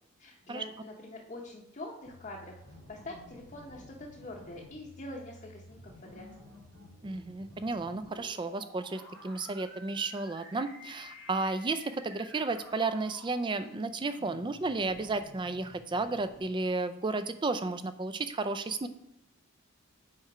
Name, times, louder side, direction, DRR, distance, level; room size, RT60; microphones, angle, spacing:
voice 1, 0.2-2.6 2.9-6.3, left 1 dB, 35° left, -3 dB, 0.8 m, -44 dB
sound 1, 2.0-16.4, left 1 dB, 80° right, 2.5 m, -52 dB
voice 2, 7.0-18.9, right 3 dB, 20° right, 11 dB, 0.3 m, -33 dB
7.5 x 4.3 x 4.9 m, 0.80 s
head